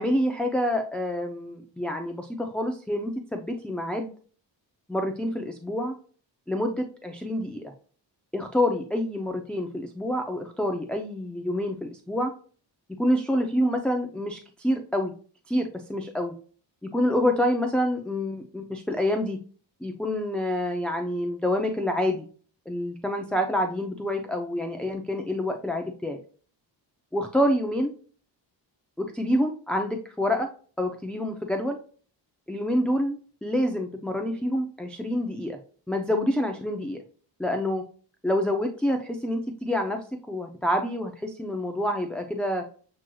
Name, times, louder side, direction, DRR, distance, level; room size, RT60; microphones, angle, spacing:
voice 1, 0.0-4.1 4.9-6.0 6.5-7.7 8.3-12.3 12.9-15.1 15.5-16.3 16.8-19.4 19.8-22.3 22.7-26.2 27.1-27.9 29.0-30.5 30.8-31.8 32.5-35.6 35.9-37.0 37.4-37.8 38.2-42.6, left 1 dB, ahead, 2 dB, 0.4 m, -27 dB
7.3 x 3.1 x 2.2 m, 0.41 s
wide cardioid pair, 140°, 45 cm